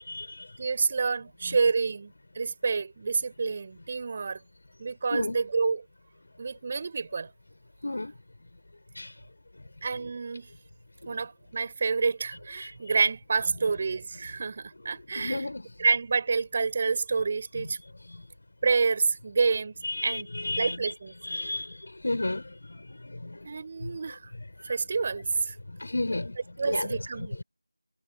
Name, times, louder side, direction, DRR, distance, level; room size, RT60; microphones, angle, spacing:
voice 1, 0.0-0.5 5.1-5.4 7.8-8.1 8.9-9.1 12.6-12.7 15.1-15.7 18.1-18.2 19.8-20.8 21.2-23.6 24.7-24.8 25.7-26.4 26.6-27.0, left 2 dB, 45° left, 4.9 m, -33 dB
voice 2, 0.6-4.4 4.8-5.8 6.4-7.3 9.8-10.5 11.1-15.4 15.8-17.8 18.6-19.7 20.0-20.3 20.6-21.1 23.4-24.3 24.6-25.5 26.6-27.4, right 4 dB, 20° right, 5.9 m, -28 dB
figure-of-eight pair, 170°, 0 cm